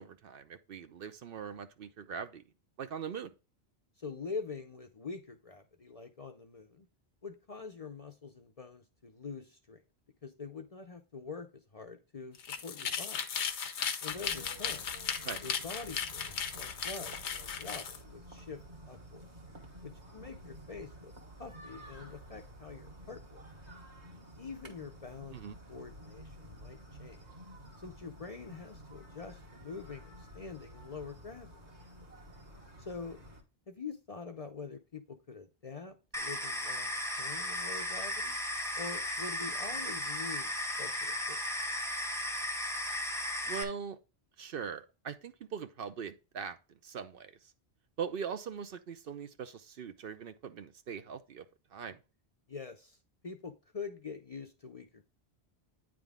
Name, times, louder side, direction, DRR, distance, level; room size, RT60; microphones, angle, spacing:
voice 1, 0.0-2.4 2.8-3.3 15.2-15.4 25.3-25.5 43.4-44.0 44.4-46.6 46.8-47.5 48.0-51.4 51.7-52.0, right 7 dB, 60° right, 0.7 m, -41 dB
voice 2, 4.0-6.9 7.2-9.8 10.2-13.2 14.0-14.8 15.4-18.6 18.9-19.2 19.8-21.1 21.4-23.4 24.4-25.4 25.7-27.2 27.8-31.5 32.8-33.2 33.7-38.4 38.8-40.5 40.8-41.4 52.5-53.0 53.2-55.0, left 4 dB, 40° left, 0.6 m, -45 dB
sound 1, 12.3-18.0, left 7 dB, 85° left, 1.0 m, -36 dB
sound 2, 14.1-33.4, right 1 dB, 40° right, 1.5 m, -51 dB
sound 3, 36.1-43.6, left 1 dB, 5° left, 0.6 m, -35 dB
9.0 x 3.7 x 3.5 m
omnidirectional pair, 1.1 m